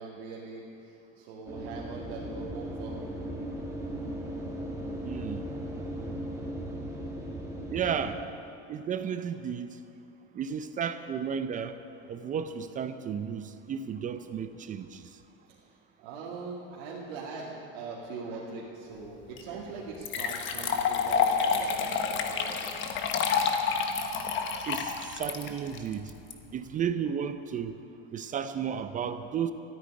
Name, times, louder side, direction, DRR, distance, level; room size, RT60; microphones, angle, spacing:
voice 1, 0.0-3.1 15.5-22.9, right 4 dB, 85° right, -5 dB, 2.4 m, -42 dB
sound 1, 1.5-8.2, right 1 dB, 10° right, 2.1 m, -37 dB
voice 2, 5.0-5.5 7.7-8.2 8.7-9.8 10.3-11.8 12.1-15.0 24.7-26.1 26.5-27.8 28.1-29.5, right 7 dB, 25° right, 10 dB, 0.5 m, -33 dB
sound 2, 19.4-19.5 20.0-26.3, left 6 dB, 40° left, 1.3 m, -28 dB
14.0 x 9.6 x 9.7 m, 2.8 s
cardioid pair, 145°, 30 cm